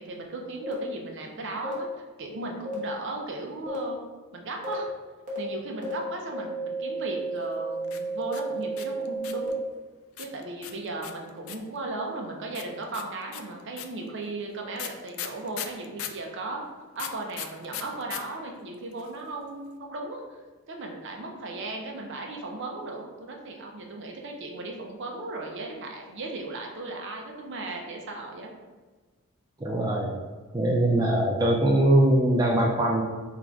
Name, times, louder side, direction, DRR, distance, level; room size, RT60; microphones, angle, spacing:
voice 1, 0.0-1.9 2.2-4.0 4.3-4.9 5.4-9.5 10.2-16.6 16.9-20.2 20.7-28.5, right 2 dB, 55° right, 1 dB, 0.6 m, -36 dB
sound 1, 0.6-0.7 1.6-1.7 2.7-2.8 3.7-3.8 4.6-4.7 5.3-5.4 5.8-5.9 6.3-9.5, right 3 dB, 35° right, 1.0 m, -33 dB
sound 2, 7.8-9.5 10.2-11.8 12.5-16.2 17.0-18.2 18.5-18.6 18.7-19.2, left 10 dB, 60° left, 0.3 m, -37 dB
voice 2, 29.6-30.2 30.5-33.0, right 1 dB, 15° right, -2 dB, 0.3 m, -22 dB
3.8 x 2.4 x 4.4 m, 1.4 s
head